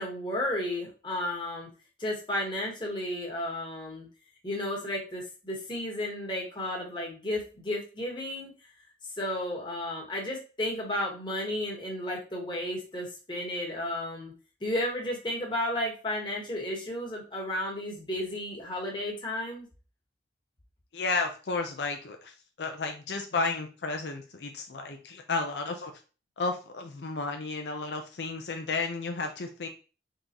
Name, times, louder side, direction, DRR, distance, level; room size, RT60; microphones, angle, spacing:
voice 1, 0.0-1.7 2.0-4.1 4.4-8.5 9.2-14.3 14.6-19.6, left 1 dB, 25° left, -2 dB, 1.3 m, -33 dB
voice 2, 20.9-25.9 26.4-29.7, left 3 dB, 80° left, 4 dB, 0.6 m, -32 dB
3.8 x 3.8 x 2.9 m, 0.34 s
head